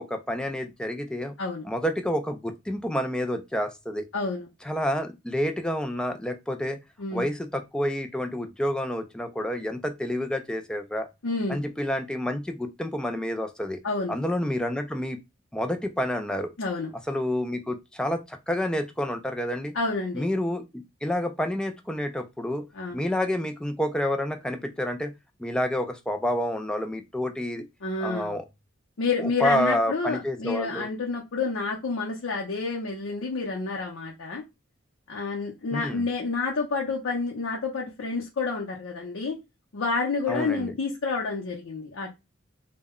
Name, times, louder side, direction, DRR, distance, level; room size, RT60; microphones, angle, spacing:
voice 1, 0.0-1.4 1.6-4.1 4.6-6.8 7.1-11.1 11.5-13.8 14.1-15.2 15.5-16.5 17.1-19.7 20.1-22.7 22.9-25.1 25.4-27.7 28.0-28.4 29.2-30.9 35.7-36.1 40.3-40.7, left 1 dB, 5° left, 0.3 m, -29 dB
voice 2, 4.1-4.5 7.0-7.2 11.2-11.6 13.8-14.2 16.6-16.9 19.7-20.2 22.7-23.0 27.8-28.4 29.0-34.4 35.1-39.4 39.7-42.1, left 4 dB, 70° left, 0.6 m, -29 dB
2.1 x 2.0 x 3.6 m
head